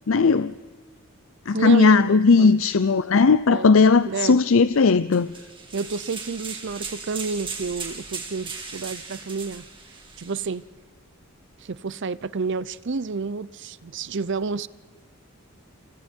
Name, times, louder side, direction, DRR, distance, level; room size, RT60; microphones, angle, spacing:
voice 1, 0.1-0.5 1.5-5.3, left 4 dB, 65° left, 0.6 m, -17 dB
voice 2, 1.5-2.7 3.5-3.7 4.0-4.4 5.7-9.6 10.2-10.6 11.6-14.7, right 4 dB, 55° right, 0.6 m, -30 dB
sound 1, 5.1-10.5, right 5 dB, 25° right, 3.4 m, -37 dB
28.5 x 27.5 x 4.5 m
head